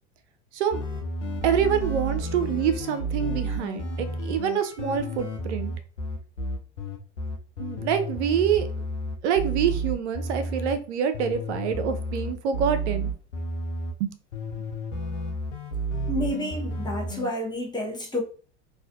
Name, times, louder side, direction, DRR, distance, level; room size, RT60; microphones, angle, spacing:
sound 1, 0.7-10.7 11.1-13.9 14.3-17.3, right 1 dB, 90° left, 0.5 m, -31 dB
voice 1, 1.4-5.7 7.6-8.7 9.2-13.1 14.0-14.1, right 8 dB, 75° right, 0.5 m, -26 dB
voice 2, 16.1-18.2, left 1 dB, 10° left, 0.7 m, -30 dB
2.4 x 2.3 x 2.2 m
hypercardioid pair, 80°, 35 cm